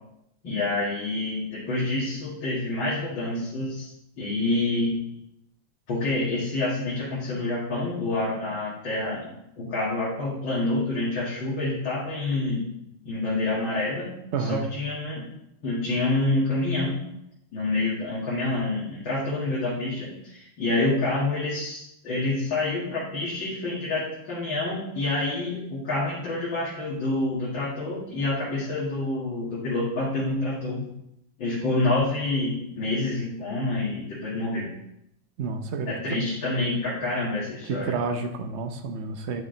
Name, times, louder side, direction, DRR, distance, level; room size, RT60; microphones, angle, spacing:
voice 1, 0.4-3.9 4.2-4.9 5.9-9.3 9.6-12.7 13.0-14.1 14.4-15.3 15.6-17.0 17.5-30.8 31.4-34.7 35.9-37.9, left 2 dB, 70° left, -8 dB, 2.8 m, -27 dB
voice 2, 14.3-14.6 35.4-35.9 37.7-39.4, right 4 dB, 60° right, 6 dB, 0.7 m, -29 dB
10.0 x 6.2 x 3.9 m, 0.80 s
omnidirectional pair, 2.2 m